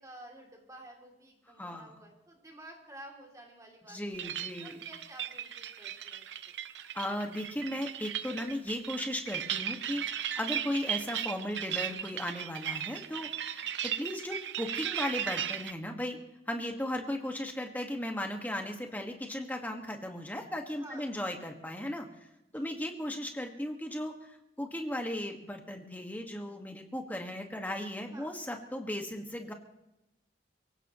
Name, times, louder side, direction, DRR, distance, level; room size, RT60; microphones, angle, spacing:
voice 1, 0.0-4.3 4.6-6.6 20.7-21.4 22.5-22.8 28.1-28.3, right 1 dB, 20° right, 0 dB, 2.8 m, -51 dB
voice 2, 1.6-1.9 3.9-4.8 6.9-16.2 16.5-22.1 22.5-29.5, left 1 dB, 10° left, 3 dB, 1.7 m, -36 dB
sound 1, 4.1-15.7, right 10 dB, 65° right, 0.8 m, -36 dB
24.5 x 16.5 x 3.1 m, 0.91 s
head